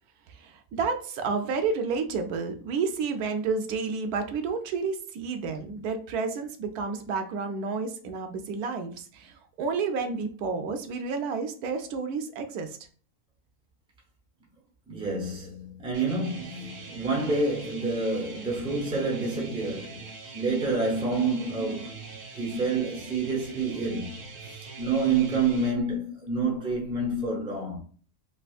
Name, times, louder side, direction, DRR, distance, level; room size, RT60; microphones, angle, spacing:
voice 1, 0.3-12.8, right 5 dB, 85° right, 1.1 m, -30 dB
voice 2, 14.9-27.8, right 3 dB, 5° right, 0.6 m, -28 dB
sound 1, 15.9-25.7, right 3 dB, 55° right, 0.9 m, -43 dB
3.4 x 2.8 x 2.4 m
omnidirectional pair, 1.6 m